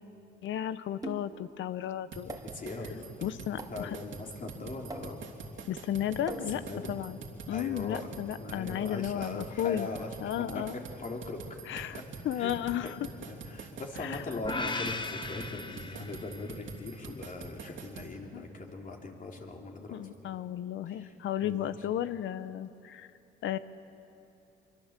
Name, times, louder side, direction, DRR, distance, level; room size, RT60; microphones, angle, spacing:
voice 1, 0.4-2.4 3.2-4.0 5.7-6.6 6.9-7.2 7.5-9.9 10.2-10.7 11.7-12.0 12.2-12.9 14.0-14.2 18.3-18.4 19.9-23.1 23.4-23.6, left 11 dB, 75° left, 13 dB, 0.9 m, -34 dB
sound 1, 1.0-1.5 2.3-2.7 3.6-4.0 4.9-5.4 6.3-6.8, right 3 dB, 20° right, 2.1 m, -43 dB
sound 2, 2.1-18.1, right 5 dB, 70° right, 3.0 m, -45 dB
voice 2, 2.4-5.2 6.5-6.9 7.5-8.1 8.4-10.1 10.5-10.6 11.0-11.4 11.7-12.0 12.4-12.9 13.2-20.0 20.9-21.1 21.4-21.7, left 3 dB, 45° left, 1 dB, 3.6 m, -40 dB
sound 3, 14.4-16.7, left 3 dB, 25° left, 1.3 m, -37 dB
25.0 x 23.5 x 7.5 m, 2.9 s
cardioid pair, 90°, 20 cm